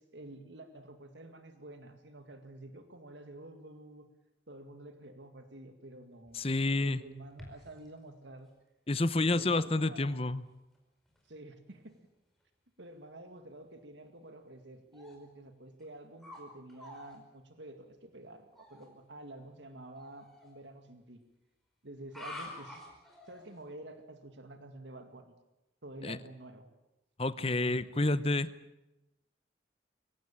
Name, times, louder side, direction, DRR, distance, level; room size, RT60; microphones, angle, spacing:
voice 1, 0.0-4.1 4.5-8.5 9.2-10.2 11.3-12.0 12.8-21.2 21.8-22.9 23.3-25.3 25.8-26.7 27.4-27.8, right 1 dB, 85° right, 8 dB, 2.1 m, -49 dB
voice 2, 6.3-7.0 8.9-10.4 26.0-26.2 27.2-28.5, left 2 dB, 30° left, 15 dB, 0.8 m, -29 dB
sound 1, 6.3-7.9 8.5-8.6 9.4-9.5 10.1-10.4 10.7-10.8 11.1-11.3 11.8-11.9 14.9-15.2 15.8-16.4 16.7-17.2 18.5-18.9 20.0-20.5 22.0-23.6, left 1 dB, ahead, 5.0 m, -49 dB
23.5 x 17.5 x 8.8 m, 0.94 s
head